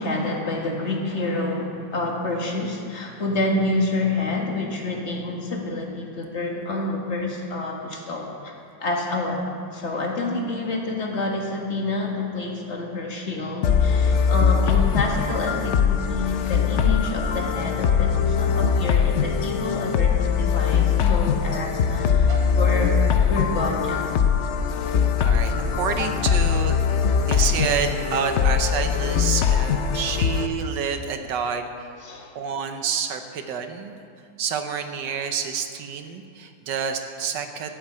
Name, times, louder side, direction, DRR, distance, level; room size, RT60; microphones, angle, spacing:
voice 1, 0.0-9.4 9.7-23.0 23.3-24.1 27.1-27.7 32.0-32.3, left 2 dB, 40° left, 0 dB, 1.9 m, -28 dB
sound 1, 13.6-30.5, left 7 dB, 90° left, 0.6 m, -21 dB
sound 2, 21.8-28.0, equal, 55° right, 2.1 m, -40 dB
voice 2, 25.2-31.9 32.3-34.0 34.4-37.7, right 6 dB, 75° right, 7 dB, 1.5 m, -28 dB
13.5 x 7.4 x 8.6 m, 2.4 s
omnidirectional pair, 2.0 m